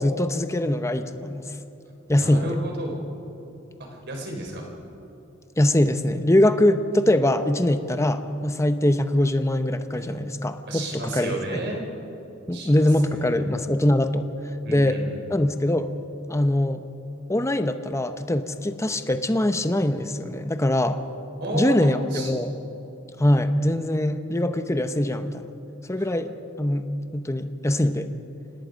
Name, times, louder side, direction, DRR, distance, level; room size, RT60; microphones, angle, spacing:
voice 1, 0.0-1.5 2.1-2.5 5.6-11.4 12.5-14.2 14.7-15.0 15.3-15.9 16.3-16.8 17.3-21.0 21.5-22.5 23.2-25.5 25.9-26.3 26.6-28.1, left 1 dB, 15° left, 9 dB, 0.8 m, -22 dB
voice 2, 2.1-3.0 3.8-4.7 9.9-10.1 10.7-11.8 12.5-13.5 14.6-15.4 21.4-22.3 26.0-26.1, right 2 dB, 55° right, 1 dB, 4.3 m, -33 dB
27.0 x 19.0 x 5.2 m, 3.0 s
head